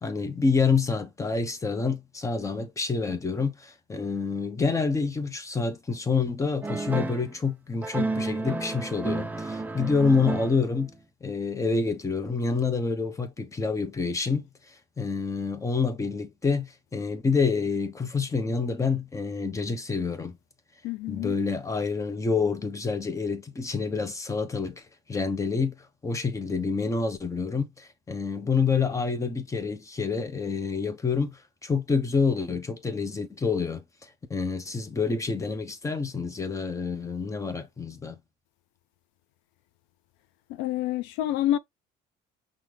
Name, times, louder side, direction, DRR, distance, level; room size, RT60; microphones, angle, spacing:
voice 1, 0.0-10.9 11.2-20.4 21.1-24.8 25.1-38.2, left 4 dB, 15° left, 1.0 m, -28 dB
sound 1, 6.6-7.3 7.8-10.9, right 3 dB, 10° right, 0.6 m, -31 dB
voice 2, 20.8-21.3 40.5-41.6, left 13 dB, 90° left, 0.6 m, -27 dB
5.9 x 2.4 x 3.3 m
cardioid pair, 120°, 19 cm